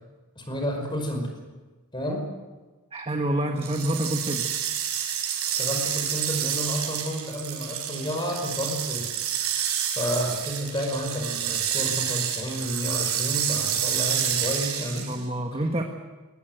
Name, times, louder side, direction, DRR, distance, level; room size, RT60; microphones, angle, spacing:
voice 1, 0.4-1.3 1.9-2.3 5.5-9.1 10.0-15.1, equal, 20° left, 3 dB, 5.4 m, -30 dB
voice 2, 2.9-4.5 15.0-15.8, right 1 dB, 25° right, 3 dB, 1.5 m, -27 dB
sound 1, 3.6-15.2, right 9 dB, 85° right, 4.6 m, -29 dB
21.5 x 19.5 x 8.1 m, 1.3 s
head